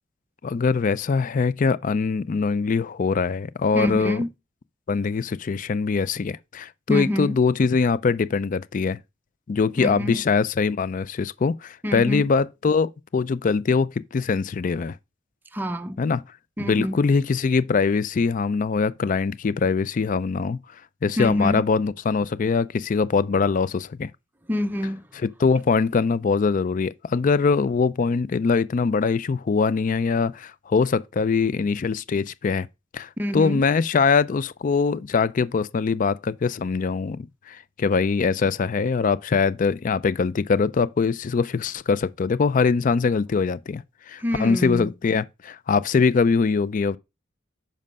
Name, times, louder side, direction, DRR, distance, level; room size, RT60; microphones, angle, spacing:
voice 1, 0.4-4.2 4.9-9.0 9.5-15.0 16.0-16.2 16.6-20.6 21.0-24.1 25.4-32.7 32.9-47.0, left 5 dB, 40° left, 0.4 m, -22 dB
voice 2, 3.7-4.3 6.9-7.4 9.8-10.2 11.8-12.2 15.5-16.0 16.6-17.0 21.2-21.6 24.5-25.1 33.2-33.6 44.2-44.9, left 1 dB, 10° right, 0.6 m, -26 dB
7.5 x 5.3 x 5.3 m
head